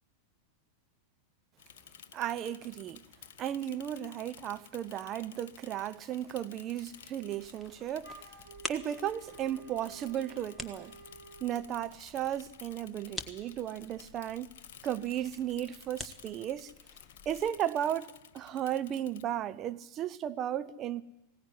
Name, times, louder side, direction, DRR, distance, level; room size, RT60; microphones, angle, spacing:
Bicycle / Mechanisms, 1.6-19.2, left 9 dB, 55° left, 0.7 m, -54 dB
voice 1, 2.1-3.0 3.4-8.3 8.7-11.0 11.4-14.5 14.8-16.7 17.2-21.0, right 11 dB, 30° right, 0.9 m, -35 dB
sound 1, 7.3-17.5, left 2 dB, 10° left, 1.5 m, -48 dB
Wind instrument woodwind instrument, 8.0-11.7, right 4 dB, 85° right, 4.1 m, -52 dB
19.5 x 17.5 x 9.9 m
figure-of-eight pair, 90°, 0 cm